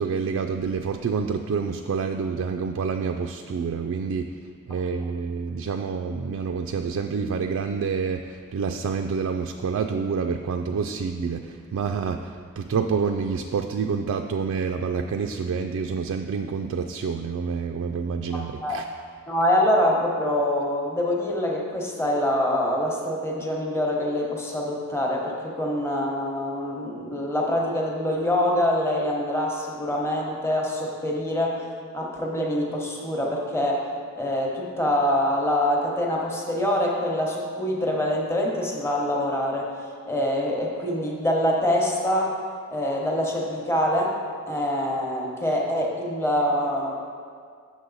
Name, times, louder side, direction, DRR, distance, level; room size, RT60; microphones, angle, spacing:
voice 1, 0.0-4.3 4.7-18.8, right 5 dB, 65° right, 4 dB, 0.3 m, -28 dB
voice 2, 19.3-31.7 31.9-33.9 34.2-39.7 40.1-42.3 42.7-44.1 44.5-47.0, left 1 dB, 10° left, -2 dB, 0.9 m, -25 dB
7.9 x 6.3 x 4.0 m, 2.1 s
head